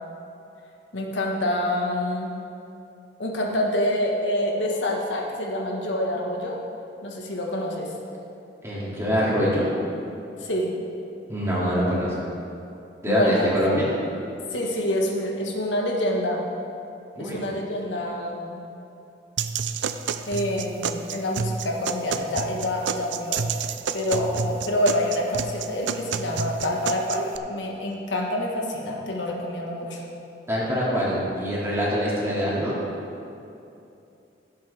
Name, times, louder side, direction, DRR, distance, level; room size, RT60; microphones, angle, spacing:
voice 1, 0.9-2.3 3.2-6.6 7.0-7.9 10.4-10.8 13.1-13.5 14.5-16.4 17.2-18.6 20.3-23.4 23.9-30.0, left 1 dB, 80° left, -1 dB, 1.4 m, -27 dB
voice 2, 8.6-9.7 11.3-12.1 13.0-13.9 17.1-17.4 24.1-24.3 30.5-32.8, equal, 15° right, -7 dB, 2.4 m, -24 dB
sound 1, 19.4-27.4, right 6 dB, 80° right, 0.4 m, -29 dB
16.0 x 7.7 x 3.4 m, 2.7 s
head